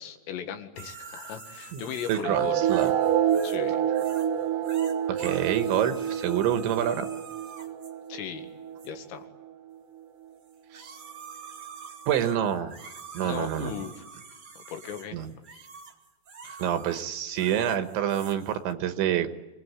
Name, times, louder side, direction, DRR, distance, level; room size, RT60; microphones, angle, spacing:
voice 1, 0.0-2.6 3.4-3.8 5.3-5.4 8.1-8.5 8.8-9.3 13.2-14.0 14.6-15.2, left 8 dB, 75° left, 6 dB, 4.5 m, -37 dB
sound 1, 0.8-3.7 3.9-4.3 4.6-7.9 8.8-8.9 10.5-18.7, right 5 dB, 55° right, 1.1 m, -46 dB
voice 2, 2.1-2.9 5.1-7.1 10.7-11.0 12.1-12.8 13.1-13.7 15.1-15.3 16.4-19.3, right 10 dB, 75° right, 9 dB, 3.3 m, -27 dB
sound 2, 2.2-9.2, right 10 dB, 90° right, 1.8 m, -27 dB
26.5 x 20.0 x 9.6 m, 1.1 s
omnidirectional pair, 6.0 m